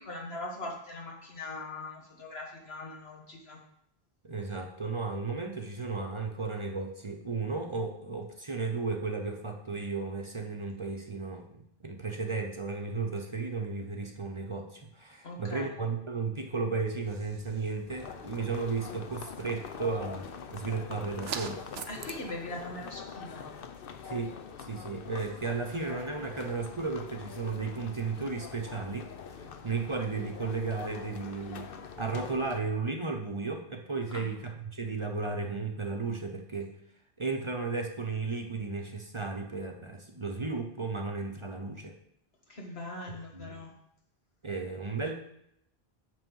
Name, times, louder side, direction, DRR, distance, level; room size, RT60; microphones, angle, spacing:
voice 1, 0.0-3.6 15.2-15.7 21.9-23.5 34.1-34.3 42.5-43.7, left 2 dB, 80° left, 0 dB, 1.9 m, -41 dB
voice 2, 4.2-21.6 24.0-31.7 32.0-36.7 37.2-42.0 43.3-43.6 44.4-45.2, right 4 dB, 30° right, 3 dB, 0.8 m, -34 dB
sound 1, 17.0-22.1, right 7 dB, 80° right, 0.9 m, -45 dB
sound 2, 17.9-32.6, left 6 dB, 65° left, 0.9 m, -44 dB
7.8 x 6.0 x 5.5 m, 0.75 s
omnidirectional pair, 1.0 m